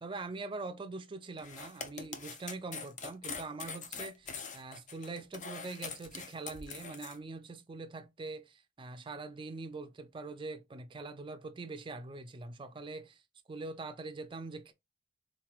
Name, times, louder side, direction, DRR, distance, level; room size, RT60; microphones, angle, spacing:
voice 1, 0.0-13.2 13.5-14.7, right 3 dB, 25° right, 0.4 m, -43 dB
sound 1, 1.4-7.2, left 5 dB, 35° left, 0.5 m, -43 dB
3.8 x 3.0 x 2.4 m
head